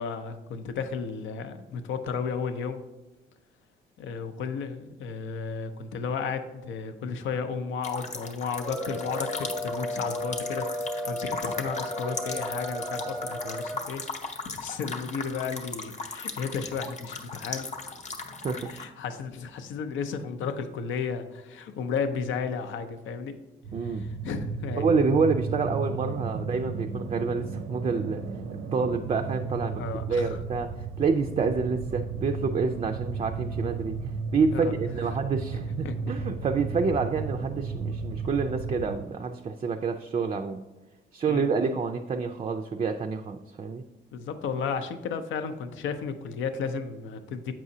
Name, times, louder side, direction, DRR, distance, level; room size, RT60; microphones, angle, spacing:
voice 1, 0.0-2.8 4.0-17.7 18.7-23.4 24.0-24.9 29.8-30.4 34.5-34.7 35.1-35.2 35.8-35.9 41.3-41.5 44.1-47.5, left 6 dB, 75° left, 9 dB, 0.6 m, -33 dB
sound 1, 7.8-18.8, left 4 dB, 35° left, 0.7 m, -37 dB
sound 2, 8.5-13.9, left 1 dB, ahead, 0.7 m, -34 dB
sound 3, 23.6-39.1, right 5 dB, 85° right, 0.6 m, -34 dB
voice 2, 23.7-24.1 24.8-28.2 28.7-29.8 30.1-34.0 34.3-40.6 41.1-43.8, right 4 dB, 30° right, 5 dB, 0.4 m, -28 dB
7.4 x 4.8 x 2.7 m, 1.1 s
cardioid pair, 90°, 20 cm